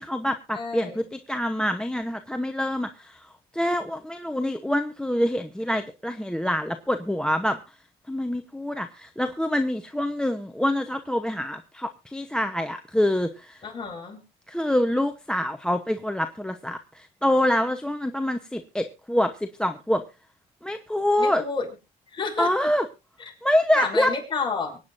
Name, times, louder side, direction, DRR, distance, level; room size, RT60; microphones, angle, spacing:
voice 1, 0.0-3.3 3.5-7.8 8.1-13.7 14.5-20.0 20.6-21.4 22.4-22.8 23.4-24.1, left 1 dB, 5° left, 10 dB, 0.9 m, -26 dB
voice 2, 0.5-1.0 13.6-14.2 21.2-21.7 22.1-22.7 23.2-23.3 23.7-24.8, left 5 dB, 30° left, 1 dB, 5.9 m, -30 dB
24.5 x 9.4 x 2.6 m, 0.27 s
cardioid pair, 110°, 17 cm